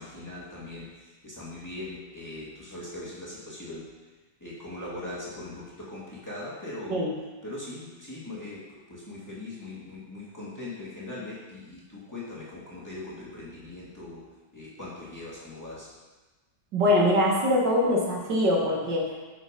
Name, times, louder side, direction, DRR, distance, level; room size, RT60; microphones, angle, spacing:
voice 1, 0.0-3.9 4.4-7.1 7.4-15.9, left 2 dB, 10° left, -7 dB, 2.1 m, -40 dB
voice 2, 16.7-19.2, left 1 dB, 70° right, -3 dB, 2.2 m, -23 dB
8.3 x 6.0 x 5.2 m, 1.2 s
omnidirectional pair, 2.0 m